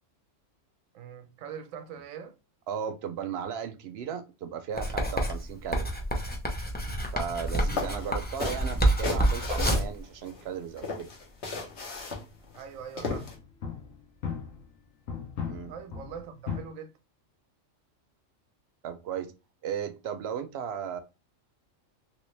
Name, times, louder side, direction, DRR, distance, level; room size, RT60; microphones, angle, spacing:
voice 1, 0.9-2.3 12.5-13.3 15.7-17.0, right 7 dB, 90° right, 1.0 m, -42 dB
voice 2, 2.7-5.9 7.1-11.1 15.4-15.7 18.8-19.3 19.6-21.0, right 8 dB, 65° right, 0.7 m, -36 dB
Writing, 4.8-10.0, right 1 dB, 10° left, 0.5 m, -28 dB
sound 1, 7.4-7.5 7.8-10.4 10.8-13.3, left 3 dB, 60° left, 1.3 m, -35 dB
sound 2, 12.3-12.5 13.0-14.8 15.1-16.6, left 6 dB, 85° left, 1.4 m, -37 dB
3.2 x 3.1 x 3.2 m
omnidirectional pair, 1.3 m